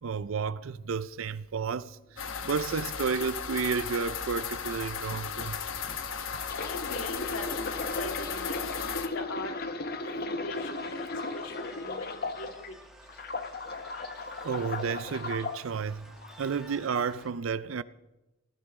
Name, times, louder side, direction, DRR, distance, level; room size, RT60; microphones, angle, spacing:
voice 1, 0.0-5.6 14.4-16.1 16.4-17.8, right 6 dB, 70° right, 0.5 m, -32 dB
sound 1, 2.2-9.1, left 6 dB, 70° left, 1.1 m, -36 dB
sound 2, 6.2-12.7 13.1-15.6 16.2-16.4, left 3 dB, 50° left, 1.1 m, -36 dB
voice 2, 6.6-9.5 10.2-10.9 11.3-12.7, left 2 dB, 85° left, 1.9 m, -41 dB
sound 3, 10.5-17.3, right 1 dB, 5° right, 1.9 m, -53 dB
19.0 x 15.0 x 3.7 m
head